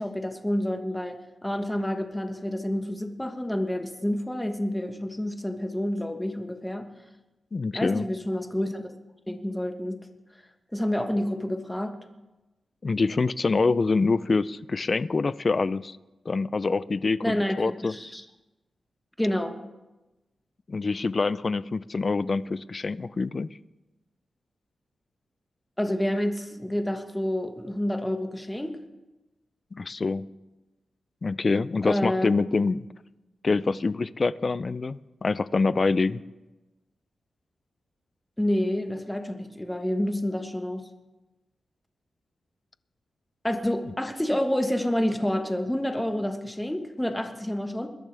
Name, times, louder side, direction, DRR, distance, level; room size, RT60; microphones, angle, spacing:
voice 1, 0.0-6.9 7.7-8.9 9.3-10.0 10.7-12.0 17.2-18.2 19.2-19.5 25.8-28.8 31.8-32.3 38.4-40.9 43.4-47.9, left 1 dB, 5° left, 6 dB, 1.3 m, -28 dB
voice 2, 7.5-8.1 12.8-16.0 16.3-17.9 20.7-23.5 29.7-30.3 31.2-32.9 33.4-36.2, left 4 dB, 40° left, 17 dB, 0.4 m, -25 dB
21.5 x 12.0 x 3.4 m, 1.1 s
wide cardioid pair, 100°, 0 cm